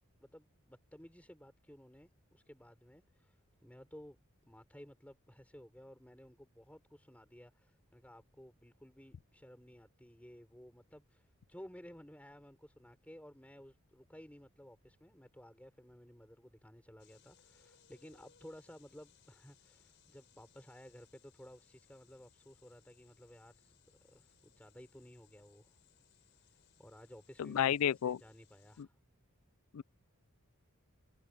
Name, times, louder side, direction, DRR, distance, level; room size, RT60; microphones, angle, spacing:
voice 1, 0.2-4.2 4.5-25.8 26.5-29.0, equal, 5° left, 4.0 m, -56 dB
sound 1, 17.0-28.8, left 8 dB, 55° left, 5.7 m, -68 dB
voice 2, 27.4-28.2 29.7-29.8, left 9 dB, 80° left, 0.4 m, -31 dB
head